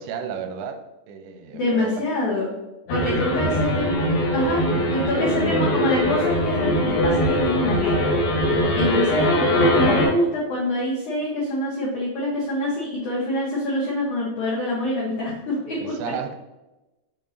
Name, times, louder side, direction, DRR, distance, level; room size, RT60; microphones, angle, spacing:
voice 1, 0.0-2.0 3.0-3.9 9.0-9.1 15.8-16.4, right 6 dB, 90° right, 6 dB, 3.0 m, -33 dB
voice 2, 1.5-2.5 2.9-4.6 4.9-8.1 8.7-9.3 9.7-15.9, left 1 dB, 80° left, -5 dB, 1.7 m, -25 dB
sound 1, 2.9-10.1, equal, 65° left, 2.7 m, -21 dB
7.6 x 4.6 x 2.7 m, 1.0 s
omnidirectional pair, 5.2 m